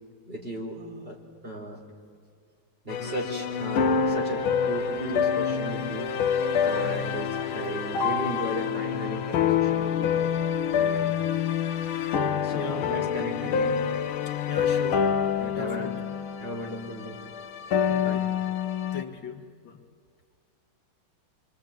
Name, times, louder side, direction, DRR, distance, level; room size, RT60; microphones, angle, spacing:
voice 1, 0.3-1.8 2.8-6.1 6.6-10.1 10.8-11.1 12.4-13.8 15.4-16.0 16.4-17.2 17.8-18.3, right 1 dB, 25° right, -1 dB, 4.9 m, -36 dB
sound 1, 2.9-19.0, left 7 dB, 85° left, 1.8 m, -27 dB
voice 2, 12.5-12.8 14.5-15.1 15.5-15.9 17.9-18.2 18.9-19.8, left 6 dB, 65° left, 3 dB, 2.4 m, -37 dB
26.0 x 25.0 x 9.1 m, 2.2 s
omnidirectional pair, 2.2 m